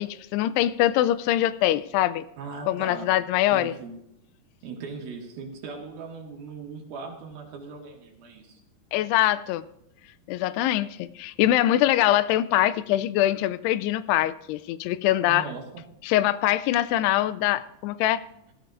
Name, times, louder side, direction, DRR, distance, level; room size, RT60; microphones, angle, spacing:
voice 1, 0.0-2.2 2.7-3.7 8.9-9.6 10.3-15.5 16.0-18.2, left 13 dB, 90° left, 15 dB, 2.6 m, -23 dB
voice 2, 2.4-3.1 3.5-4.0 4.6-8.6 15.3-15.8, right 4 dB, 70° right, 1 dB, 3.5 m, -39 dB
19.0 x 13.5 x 2.6 m, 0.78 s
omnidirectional pair, 4.6 m